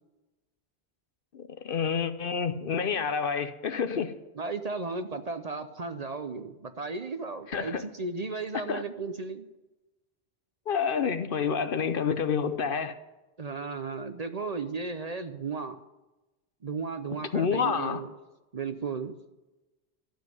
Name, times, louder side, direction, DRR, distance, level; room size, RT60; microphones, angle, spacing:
voice 1, 1.3-4.1 7.5-7.8 8.5-8.8 10.7-13.0 17.3-18.0, left 6 dB, 55° left, 0.9 m, -28 dB
voice 2, 4.4-9.5 13.4-15.8 16.6-18.1 18.5-19.1, right 4 dB, 40° right, 0.7 m, -35 dB
12.5 x 7.3 x 9.4 m
omnidirectional pair, 1.1 m